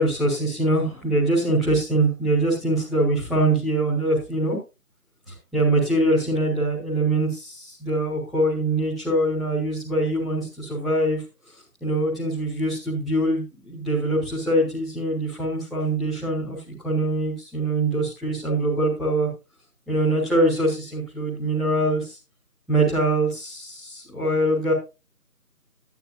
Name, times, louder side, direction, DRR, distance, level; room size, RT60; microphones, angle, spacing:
voice 1, 0.0-4.6 5.3-11.2 11.8-16.6 16.8-19.3 19.9-22.2 22.7-24.7, right 1 dB, ahead, -12 dB, 1.6 m, -23 dB
11.5 x 10.5 x 2.7 m, 0.27 s
figure-of-eight pair, 175°, 47 cm